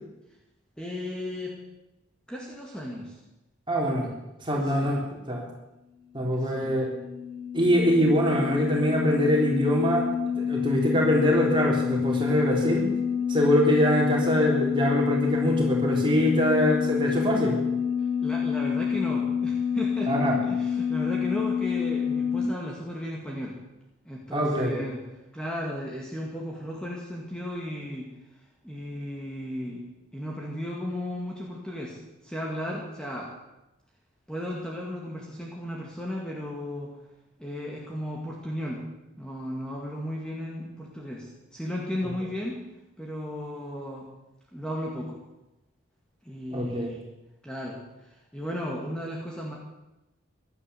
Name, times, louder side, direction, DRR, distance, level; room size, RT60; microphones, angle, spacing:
voice 1, 0.8-1.5 2.3-3.2 4.8-5.0 6.4-6.9 18.2-23.6 24.1-25.0 25.3-28.1 28.6-29.8 30.1-33.3 34.3-36.9 37.4-38.9 39.2-42.6 43.0-44.1 44.5-45.2 46.2-47.0 47.4-49.6, left 1 dB, 5° left, -3 dB, 2.0 m, -35 dB
voice 2, 3.7-4.1 4.4-5.4 6.1-6.9 7.5-10.1 10.3-12.9 13.3-17.6 20.1-20.4 24.3-24.8 46.5-46.9, equal, 25° right, -1 dB, 3.6 m, -23 dB
sound 1, 6.3-22.5, left 7 dB, 90° right, 2.7 m, -28 dB
16.5 x 11.5 x 6.9 m, 0.95 s
head